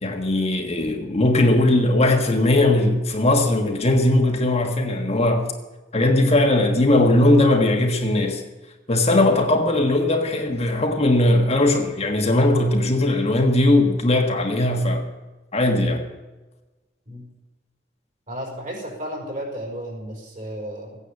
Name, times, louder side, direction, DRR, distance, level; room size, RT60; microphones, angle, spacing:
voice 1, 0.0-5.5 5.9-8.4 8.9-15.0 15.5-16.0, left 1 dB, 35° left, 1.6 m, -19 dB
voice 2, 18.3-21.0, equal, 45° right, 5.3 m, -33 dB
16.0 x 9.7 x 7.3 m
head